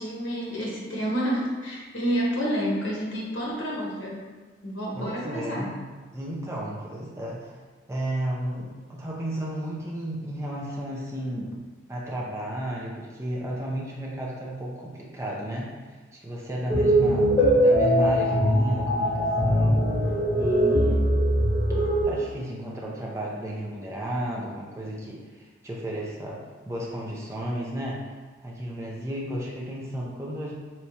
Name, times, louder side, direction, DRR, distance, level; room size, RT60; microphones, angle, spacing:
voice 1, 0.0-4.3 4.6-5.7, equal, 70° left, -4 dB, 1.0 m, -29 dB
voice 2, 4.9-5.7 6.1-7.5 7.9-11.5 11.9-19.9 20.3-21.2 22.0-28.1 28.4-30.5, right 1 dB, 15° right, -4 dB, 0.5 m, -33 dB
sound 1, 16.7-22.0, equal, 25° left, 0.9 m, -21 dB
3.4 x 3.1 x 2.8 m, 1.4 s
head